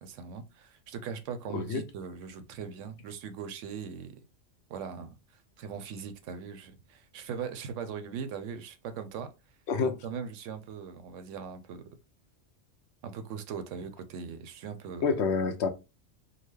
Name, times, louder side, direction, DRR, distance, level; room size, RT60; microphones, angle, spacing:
voice 1, 0.0-4.2 4.7-5.2 5.6-9.3 9.8-11.8 13.0-15.1, right 6 dB, 75° right, 0.9 m, -40 dB
voice 2, 15.0-15.7, left 5 dB, 65° left, 0.8 m, -27 dB
3.9 x 2.1 x 3.2 m
omnidirectional pair, 1.3 m